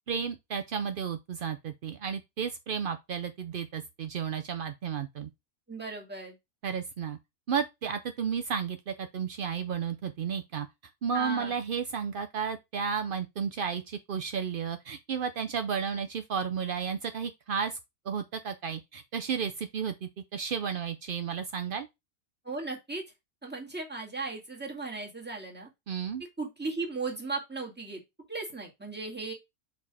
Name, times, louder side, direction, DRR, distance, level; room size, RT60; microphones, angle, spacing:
voice 1, 0.1-5.3 6.6-7.2 7.5-10.7 11.0-17.8 18.1-21.9 25.9-26.2, right 6 dB, 70° right, 0.5 m, -33 dB
voice 2, 5.7-6.4 11.1-11.5 22.4-23.0 23.4-25.7 26.4-28.0 28.3-29.3, right 3 dB, 5° right, 1.7 m, -36 dB
5.4 x 4.0 x 4.8 m
omnidirectional pair, 1.6 m